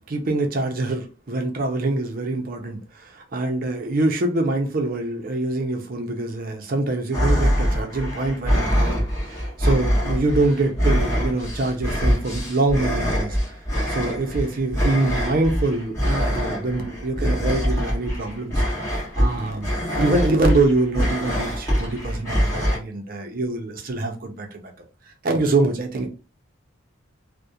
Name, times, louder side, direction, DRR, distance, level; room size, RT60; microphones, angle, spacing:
voice 1, 0.0-13.6 13.9-18.6 19.2-24.6 25.2-26.1, right 2 dB, 45° right, 0.5 m, -24 dB
sound 1, 7.1-22.8, equal, 15° left, 1.0 m, -24 dB
2.4 x 2.1 x 2.7 m
head